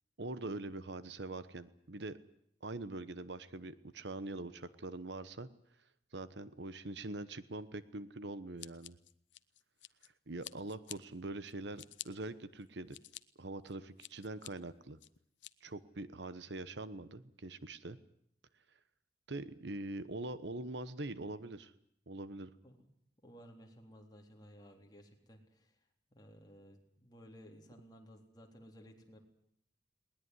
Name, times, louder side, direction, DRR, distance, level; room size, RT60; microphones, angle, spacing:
voice 1, 0.2-2.2 2.6-5.5 6.1-9.0 10.3-13.0 13.4-15.0 15.6-18.0 19.3-21.7 22.1-22.5, right 2 dB, 70° right, 15 dB, 1.1 m, -43 dB
Scissors, 8.6-10.1 10.4-11.0 11.5-12.1 12.6-13.2 13.7-14.5 15.0-15.5, left 14 dB, 75° left, 0.9 m, -49 dB
voice 2, 23.2-25.7 26.1-29.2, equal, 20° left, 2 dB, 3.7 m, -57 dB
20.5 x 19.5 x 9.7 m, 0.71 s
head